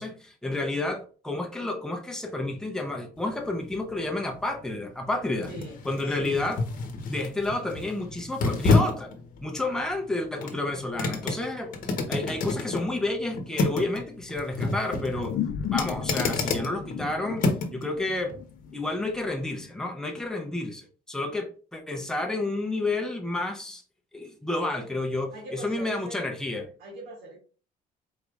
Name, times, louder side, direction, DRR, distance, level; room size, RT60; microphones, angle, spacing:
voice 1, 0.0-5.5 5.9-6.6 7.1-9.1 9.4-11.8 12.1-15.4 15.7-18.4 18.7-23.8 24.1-26.7, left 2 dB, 5° left, 0.7 m, -30 dB
sound 1, 3.2-17.8 18.3-18.4, left 3 dB, 55° left, 0.9 m, -30 dB
voice 2, 5.5-6.4 25.3-26.2 26.8-27.4, right 1 dB, 70° right, 2.1 m, -41 dB
sound 2, 15.1-19.9, left 9 dB, 85° left, 0.6 m, -35 dB
4.8 x 4.0 x 2.4 m
cardioid pair, 150°, 16 cm